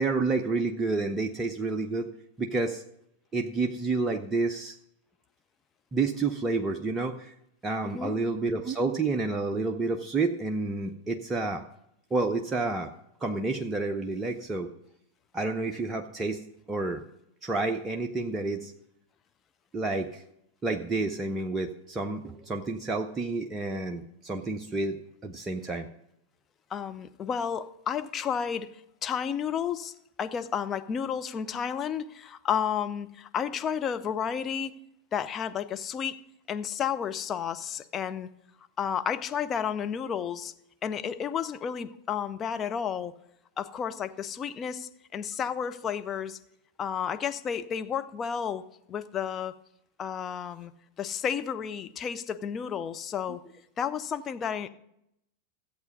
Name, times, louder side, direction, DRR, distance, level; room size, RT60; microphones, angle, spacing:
voice 1, 0.0-2.1 2.4-2.8 3.3-4.8 5.9-7.3 7.6-11.6 12.1-12.9 13.2-14.7 15.3-16.4 16.7-17.0 17.4-18.7 19.7-20.2 20.6-25.9, right 3 dB, 15° right, 4 dB, 0.7 m, -29 dB
voice 2, 7.8-8.1 26.7-28.7 29.0-29.9 30.2-34.8 35.1-36.2 36.5-38.3 38.8-40.5 40.8-43.1 43.6-46.4 46.8-49.5 50.0-50.7 51.0-53.4 53.8-54.7, left 8 dB, 25° left, 9 dB, 0.6 m, -32 dB
14.0 x 8.1 x 5.4 m, 0.79 s
figure-of-eight pair, 90°, 0 cm